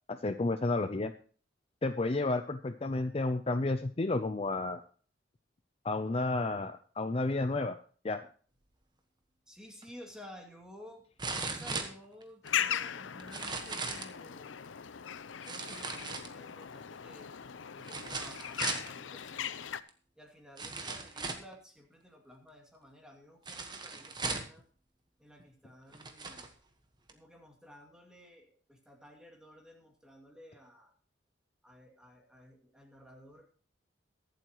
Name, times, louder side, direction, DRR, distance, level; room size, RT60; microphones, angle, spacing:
voice 1, 0.1-1.1 1.8-4.8 5.8-7.8 8.0-8.3, left 2 dB, 30° left, 9 dB, 0.5 m, -31 dB
voice 2, 9.5-11.1 11.4-14.7 15.5-17.3 17.7-19.7 20.2-24.7 25.2-26.5 27.1-30.9 31.6-33.5, equal, 5° right, 1 dB, 2.3 m, -54 dB
sound 1, 9.8-9.9 11.2-12.5 13.2-14.2 15.4-16.6 17.8-18.9 19.9-20.0 20.6-21.5 23.5-24.6 25.4-25.5 25.9-26.5 27.1-27.2, right 4 dB, 25° right, 1.2 m, -38 dB
sound 2, 12.4-19.8, left 9 dB, 85° left, 0.6 m, -39 dB
23.0 x 7.8 x 3.0 m, 0.42 s
head